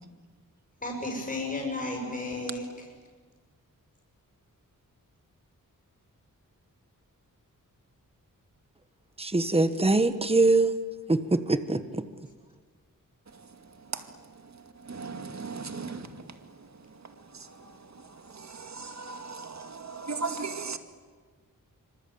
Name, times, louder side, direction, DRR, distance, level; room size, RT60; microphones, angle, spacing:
voice 1, 0.8-2.9, left 2 dB, 25° left, 6.6 m, -33 dB
voice 2, 9.2-10.7 11.1-12.0, right 2 dB, 20° right, 1.3 m, -23 dB
voice 3, 14.9-16.1 18.5-20.8, right 4 dB, 55° right, 2.3 m, -36 dB
26.0 x 25.5 x 8.8 m
wide cardioid pair, 120°, 33 cm